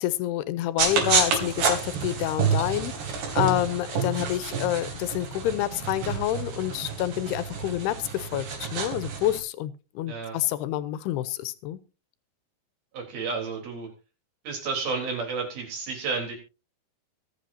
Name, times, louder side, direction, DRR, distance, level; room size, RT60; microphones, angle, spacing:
voice 1, 0.0-2.9 3.3-11.8, left 13 dB, 85° left, 15 dB, 2.8 m, -28 dB
sound 1, 0.8-9.4, right 6 dB, 85° right, 4.9 m, -29 dB
voice 2, 10.1-10.4 12.9-13.9 14.5-16.4, right 4 dB, 65° right, 2 dB, 5.5 m, -31 dB
24.0 x 8.3 x 2.8 m, 0.30 s
omnidirectional pair, 4.6 m